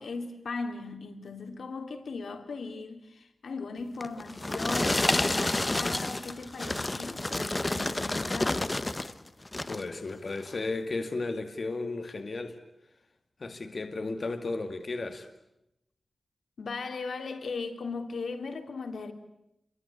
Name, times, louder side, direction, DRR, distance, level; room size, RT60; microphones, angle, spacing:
voice 1, 0.0-8.8 16.6-19.1, left 4 dB, 85° left, 3.4 m, -38 dB
sound 1, 4.0-9.1 9.5-9.9 10.5-10.6, left 2 dB, 25° left, 1.4 m, -29 dB
voice 2, 9.6-12.6 13.4-15.3, left 3 dB, 55° left, 2.2 m, -34 dB
29.5 x 24.0 x 8.4 m
wide cardioid pair, 85°, 0 cm